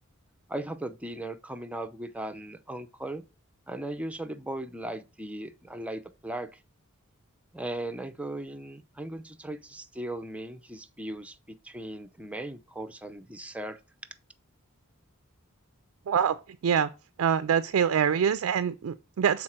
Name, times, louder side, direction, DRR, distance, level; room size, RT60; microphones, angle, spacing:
voice 1, 0.5-3.2 3.7-6.6 7.5-13.8, right 1 dB, 5° right, 0.6 m, -38 dB
voice 2, 16.1-16.4 16.6-16.9 17.2-19.4, right 8 dB, 65° right, 0.4 m, -25 dB
6.3 x 4.0 x 4.4 m
head